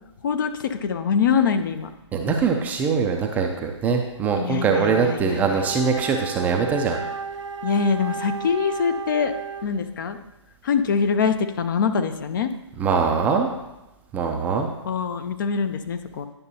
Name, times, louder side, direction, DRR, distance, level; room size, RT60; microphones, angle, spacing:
voice 1, 0.2-1.9 4.4-5.6 7.6-9.3 9.6-10.2 10.6-12.5 14.8-16.3, left 6 dB, 45° left, 9 dB, 0.5 m, -24 dB
voice 2, 2.1-7.0 12.8-13.5 14.1-14.7, right 5 dB, 10° right, 3 dB, 0.4 m, -22 dB
Wind instrument woodwind instrument, 4.6-9.8, right 5 dB, 80° right, 0.5 m, -33 dB
10.0 x 6.6 x 2.8 m, 0.98 s
figure-of-eight pair, 130°, 15 cm